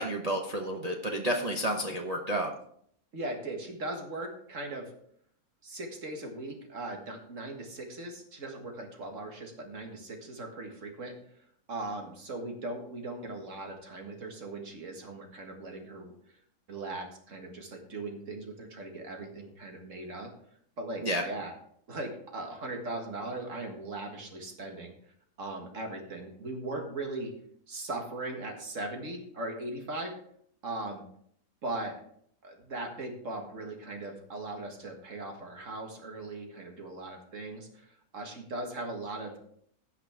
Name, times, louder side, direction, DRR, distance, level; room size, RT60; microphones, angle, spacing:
voice 1, 0.0-2.5 21.0-21.2, right 1 dB, 30° right, 0 dB, 0.8 m, -30 dB
voice 2, 3.1-4.9 5.6-11.2 11.7-16.2 16.7-20.3 20.8-21.6 21.9-24.9 25.4-27.3 27.7-30.2 30.6-31.0 31.6-32.0 32.4-39.4, right 2 dB, 60° right, 3 dB, 2.0 m, -39 dB
16.5 x 5.9 x 3.6 m, 0.65 s
omnidirectional pair, 1.5 m